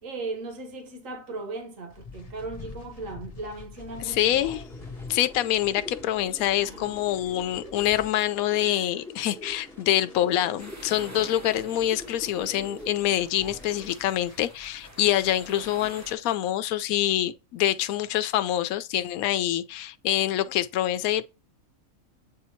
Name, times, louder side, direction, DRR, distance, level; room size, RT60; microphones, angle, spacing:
voice 1, 0.0-4.6 6.6-6.9, right 3 dB, 65° right, 1.7 m, -37 dB
sound 1, 1.9-15.3, left 4 dB, 40° left, 0.6 m, -47 dB
sound 2, 3.9-13.9, equal, ahead, 0.9 m, -45 dB
voice 2, 4.0-4.6 5.1-21.3, left 12 dB, 80° left, 1.0 m, -26 dB
sound 3, 10.6-16.1, right 1 dB, 20° right, 0.5 m, -47 dB
8.2 x 2.8 x 4.3 m
omnidirectional pair, 1.5 m